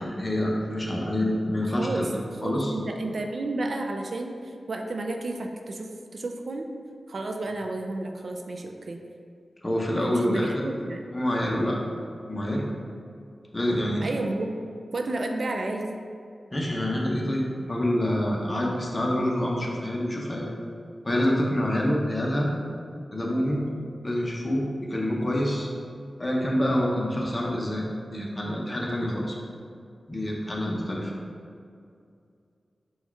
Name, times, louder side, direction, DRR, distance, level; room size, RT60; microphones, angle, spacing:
voice 1, 0.0-2.1 2.4-2.7 9.6-10.5 11.1-11.8 12.2-12.7 13.5-14.1 16.5-20.5 21.0-22.5 23.1-23.6 24.0-25.7 26.2-27.8 28.1-29.3 30.1-31.1, left 1 dB, 30° left, -2 dB, 0.7 m, -26 dB
voice 2, 1.6-2.1 2.4-4.4 4.7-6.7 7.1-9.0 10.0-11.0 14.0-14.5 14.9-16.0, right 2 dB, 65° right, 3 dB, 0.3 m, -31 dB
4.2 x 2.3 x 4.5 m, 2.4 s
wide cardioid pair, 75°, 0 cm